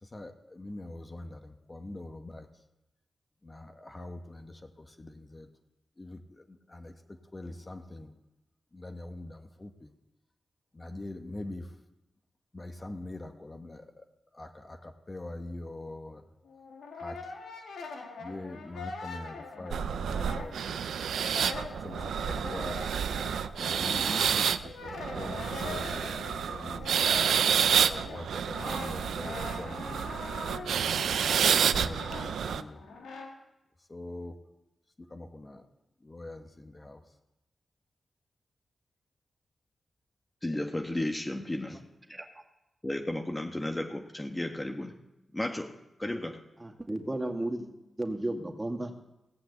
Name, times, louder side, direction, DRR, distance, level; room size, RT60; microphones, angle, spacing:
voice 1, 0.0-2.5 3.4-5.5 6.0-8.1 8.7-9.9 10.7-11.8 12.5-14.0 14.3-16.2 16.9-17.3 18.2-20.8 21.6-22.9 23.6-27.3 27.7-31.1 31.6-32.8 33.8-34.4 35.0-35.7 36.0-37.0 41.5-41.8, left 2 dB, 35° left, 5 dB, 1.6 m, -44 dB
Brass instrument, 16.4-20.9 21.1-33.3, left 4 dB, 90° left, 2.1 m, -43 dB
sound 1, 19.7-32.6, right 8 dB, 85° right, 0.5 m, -29 dB
voice 2, 40.4-41.8 42.8-44.9 45.3-45.7 46.0-46.4, left 1 dB, 20° left, 4 dB, 1.4 m, -33 dB
voice 3, 46.6-47.7 48.0-48.9, right 1 dB, 25° right, 3 dB, 2.1 m, -33 dB
17.5 x 6.0 x 8.3 m, 0.94 s
supercardioid pair, 45°, 0 cm